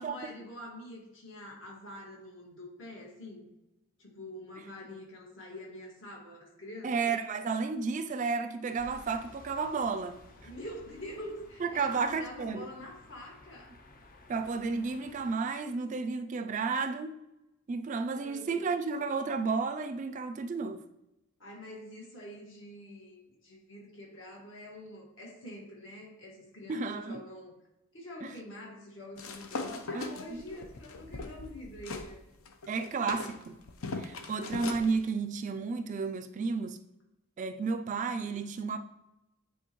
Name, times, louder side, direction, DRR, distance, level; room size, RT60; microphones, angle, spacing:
voice 1, 0.0-3.5 4.0-6.9 10.4-13.7 18.1-18.8 21.4-27.6 27.9-32.2, left 1 dB, 65° left, 1.8 m, -46 dB
voice 2, 6.8-10.2 11.6-12.7 14.3-17.2 17.7-20.8 26.7-27.2 28.2-28.3 29.9-30.4 32.7-33.6 34.0-36.8 37.4-38.8, right 4 dB, 35° right, 0.3 m, -32 dB
sound 1, 8.8-15.3, left 2 dB, 40° left, 0.6 m, -55 dB
sound 2, 29.2-32.1 32.4-34.9, left 3 dB, 85° left, 0.7 m, -40 dB
9.1 x 3.8 x 3.0 m
head